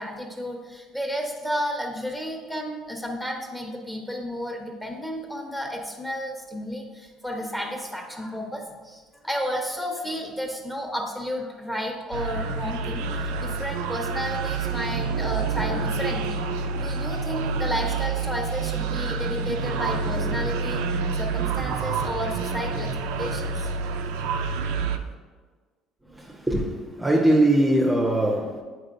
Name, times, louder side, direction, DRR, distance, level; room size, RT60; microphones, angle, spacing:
voice 1, 0.0-16.4 16.7-23.7 24.8-24.9, equal, 10° left, 1.1 m, -32 dB
sound 1, 12.1-25.0, right 4 dB, 85° right, 0.3 m, -28 dB
voice 2, 26.0-28.6, right 1 dB, 10° right, 0.7 m, -22 dB
8.0 x 4.6 x 2.6 m
supercardioid pair, 80°, 0 cm